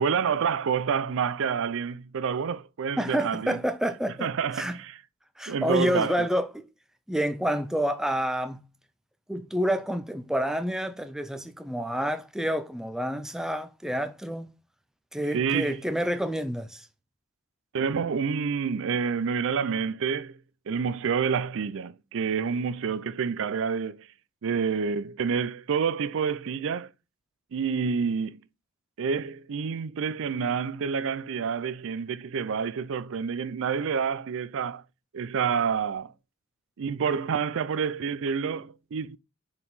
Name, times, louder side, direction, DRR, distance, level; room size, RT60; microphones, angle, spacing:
voice 1, 0.0-3.6 4.2-5.0 5.5-6.3 15.3-15.8 17.7-20.4 20.7-24.1 24.4-26.9 27.5-28.4 29.0-34.8 35.1-36.1 36.8-39.2, right 6 dB, 60° right, 0.4 m, -28 dB
voice 2, 3.0-4.8 5.4-6.6 7.1-8.6 9.3-14.5 15.1-16.9, equal, ahead, 0.5 m, -28 dB
5.4 x 4.8 x 4.0 m
head